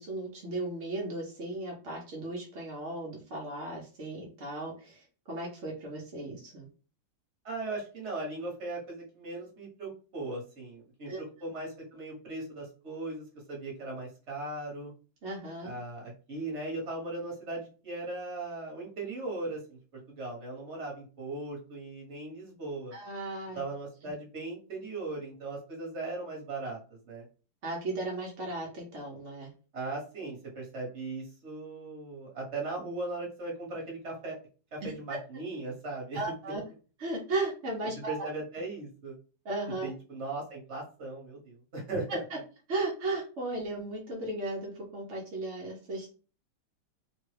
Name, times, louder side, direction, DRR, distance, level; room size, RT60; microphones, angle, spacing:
voice 1, 0.0-6.7 11.1-11.2 15.2-15.7 22.9-23.6 27.6-29.5 34.8-35.2 36.1-36.6 37.0-38.3 39.4-39.9 42.1-42.4 42.7-46.1, right 2 dB, 65° right, -2 dB, 0.7 m, -36 dB
voice 2, 7.4-14.9 15.6-22.9 23.5-27.2 29.7-34.4 34.7-36.3 38.1-39.2 39.8-42.2, right 2 dB, 40° right, -2 dB, 1.2 m, -38 dB
3.2 x 2.2 x 3.2 m, 0.37 s
omnidirectional pair, 2.2 m